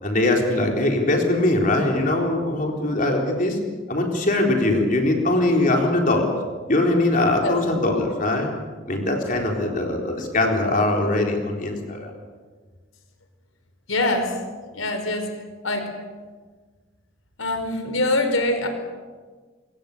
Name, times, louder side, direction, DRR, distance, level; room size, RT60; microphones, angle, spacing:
voice 1, 0.0-3.6 3.9-6.3 6.7-8.5 8.9-12.1, left 2 dB, 40° left, 1 dB, 4.1 m, -21 dB
voice 2, 13.9-14.4 14.7-15.3 15.6-15.9 17.4-18.7, left 2 dB, 80° left, 6 dB, 4.7 m, -23 dB
27.0 x 22.0 x 6.8 m, 1.5 s
head